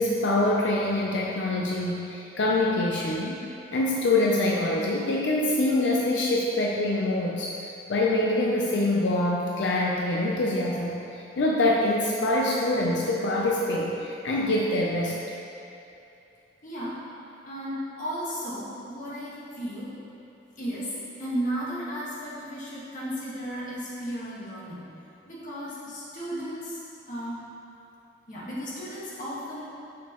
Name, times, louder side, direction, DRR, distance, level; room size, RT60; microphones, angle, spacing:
voice 1, 0.0-15.1, left 2 dB, 90° left, -2 dB, 0.5 m, -25 dB
voice 2, 16.6-17.0 17.5-19.9 20.6-24.8 25.3-26.8 27.1-27.5 28.3-29.6, equal, 45° left, -8 dB, 1.5 m, -34 dB
6.5 x 5.6 x 3.0 m, 2.8 s
head